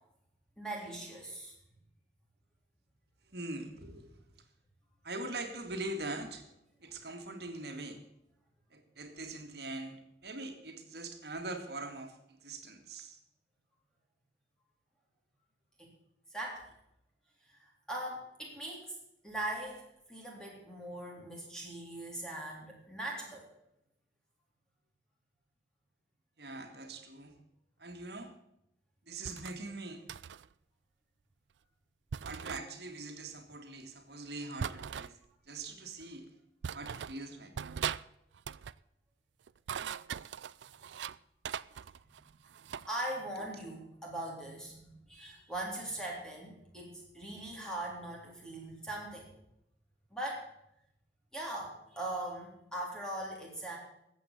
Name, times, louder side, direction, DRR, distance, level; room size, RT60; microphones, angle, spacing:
voice 1, 0.6-1.5 15.8-15.9 16.3-16.6 17.5-17.6 17.9-18.9 19.2-19.8 20.1-23.5 42.9-49.3 50.1-50.5 51.3-53.8, right 1 dB, 5° left, -2 dB, 3.6 m, -40 dB
voice 2, 3.3-4.1 5.0-6.5 6.8-8.0 8.7-12.1 12.4-13.2 26.4-27.4 27.8-28.3 29.1-30.0 32.2-35.2 35.5-36.3 36.7-37.5 43.5-43.6, right 2 dB, 65° right, 6 dB, 2.2 m, -42 dB
sound 1, 29.2-29.6 30.1-30.5 32.1-32.6 34.6-35.1 36.0-36.1 36.6-37.2 37.6-38.0 38.3-38.8 39.5-41.2 41.4-42.9, right 7 dB, 85° right, 0.4 m, -40 dB
14.5 x 8.4 x 6.7 m, 0.80 s
head